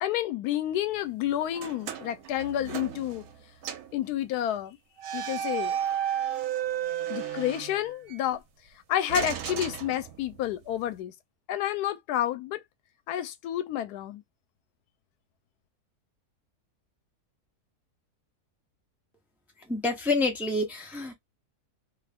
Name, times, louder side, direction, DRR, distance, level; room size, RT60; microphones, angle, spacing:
voice 1, 0.0-3.2 3.9-4.8 5.1-5.8 7.1-8.4 8.9-11.1 11.5-12.6 13.1-14.2, left 11 dB, 85° left, 1.1 m, -30 dB
sound 1, 1.5-3.4 3.6-4.0 5.0-8.2 9.1-10.5, right 10 dB, 70° right, 1.1 m, -33 dB
voice 2, 19.6-21.1, left 2 dB, ahead, 0.6 m, -28 dB
2.8 x 2.4 x 3.4 m
omnidirectional pair, 1.6 m